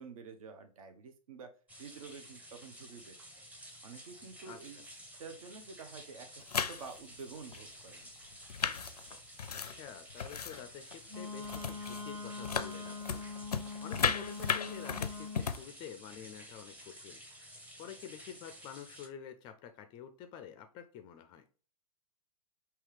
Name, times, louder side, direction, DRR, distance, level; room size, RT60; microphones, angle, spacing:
voice 1, 0.0-1.5 1.8-3.4 3.8-8.1, right 5 dB, 65° right, 8 dB, 0.7 m, -49 dB
sound 1, 1.7-19.1, equal, 10° right, 0.7 m, -52 dB
sound 2, 6.4-7.0 7.5-7.6 8.3-10.7 10.9-11.2 11.4-12.1 12.4-15.6, left 6 dB, 85° left, 0.4 m, -35 dB
voice 2, 9.5-13.2 13.5-17.2 17.5-21.5, left 8 dB, 25° left, 8 dB, 0.4 m, -48 dB
Wind instrument woodwind instrument, 11.1-15.5, left 4 dB, 80° right, 1.9 m, -43 dB
5.5 x 2.8 x 3.2 m, 0.40 s
figure-of-eight pair, 105°, 19 cm